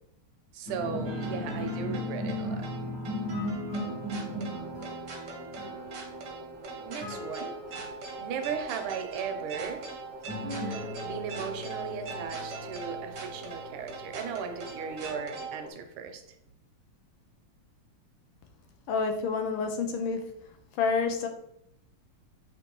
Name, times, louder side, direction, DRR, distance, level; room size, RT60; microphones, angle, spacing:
voice 1, 0.5-2.7 6.8-7.5 8.2-9.9 10.6-16.2, right 6 dB, 75° right, 6 dB, 1.4 m, -37 dB
sound 1, 0.7-8.0 10.3-14.3, left 1 dB, 60° left, 1.0 m, -37 dB
Town of Tranqness, 1.0-15.7, right 4 dB, 60° right, 0.9 m, -41 dB
voice 2, 18.9-20.3 20.8-21.3, left 5 dB, 90° left, 5 dB, 1.5 m, -28 dB
5.1 x 2.9 x 2.9 m, 0.74 s
omnidirectional pair, 2.4 m